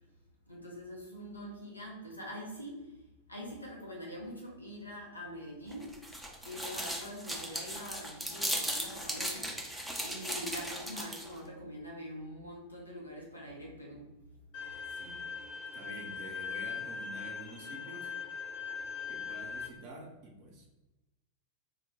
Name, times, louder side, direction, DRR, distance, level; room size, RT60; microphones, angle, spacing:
voice 1, 0.5-2.9 3.3-6.0 6.5-14.2 14.7-14.8, equal, 85° left, -3 dB, 0.6 m, -44 dB
sound 1, 5.7-11.4, equal, ahead, 0.5 m, -37 dB
Bowed string instrument, 14.5-19.7, left 6 dB, 45° left, 1.0 m, -40 dB
voice 2, 14.9-15.2 15.7-18.1 19.1-20.7, right 2 dB, 45° right, -1 dB, 0.6 m, -48 dB
2.1 x 2.0 x 3.2 m, 1.0 s
figure-of-eight pair, 90°, 0 cm